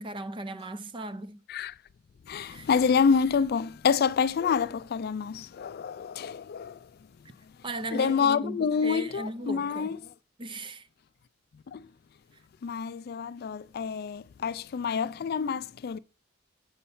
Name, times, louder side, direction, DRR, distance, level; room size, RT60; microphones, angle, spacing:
voice 1, 0.0-1.7 2.4-2.7 7.6-10.0 10.4-10.9, right 1 dB, 25° right, 0.5 m, -37 dB
voice 2, 2.3-6.8 7.9-10.0 11.7-11.8 12.6-16.0, left 6 dB, 50° left, 0.3 m, -27 dB
6.6 x 5.2 x 7.0 m
head